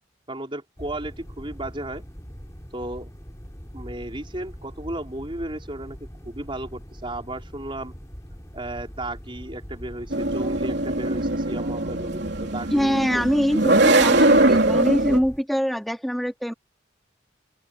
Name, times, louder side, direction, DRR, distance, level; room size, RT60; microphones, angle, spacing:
voice 1, 0.3-2.0 2.7-3.1 3.7-6.0 6.2-7.9 8.5-13.2, right 1 dB, 25° right, 5.2 m, -34 dB
sound 1, 0.8-15.4, equal, 15° left, 4.0 m, -41 dB
sound 2, 10.1-15.2, right 2 dB, 60° right, 3.5 m, -21 dB
voice 2, 12.7-16.5, equal, ahead, 2.7 m, -24 dB
open air
head